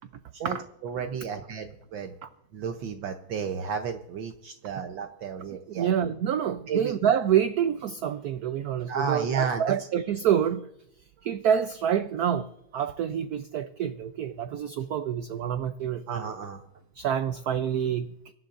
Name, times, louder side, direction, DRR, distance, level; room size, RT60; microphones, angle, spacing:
voice 1, 0.8-2.1 2.5-5.9 6.7-6.9 8.9-9.7 16.1-16.6, right 6 dB, 70° right, 1.5 m, -32 dB
voice 2, 5.7-10.7 11.2-16.3 16.9-18.3, right 9 dB, 90° right, 0.8 m, -27 dB
24.5 x 11.5 x 2.5 m
omnidirectional pair, 2.3 m